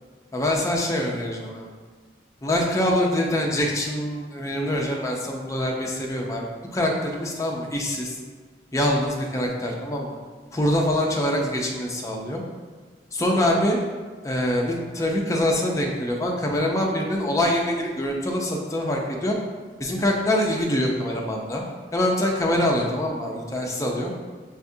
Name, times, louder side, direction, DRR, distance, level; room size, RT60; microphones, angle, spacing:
voice 1, 0.3-1.7 2.4-6.4 6.7-8.2 8.7-10.1 10.5-12.4 13.1-13.8 14.2-19.4 19.8-21.6 21.9-24.1, left 1 dB, 15° left, 0 dB, 0.5 m, -24 dB
6.6 x 2.3 x 2.6 m, 1.5 s
head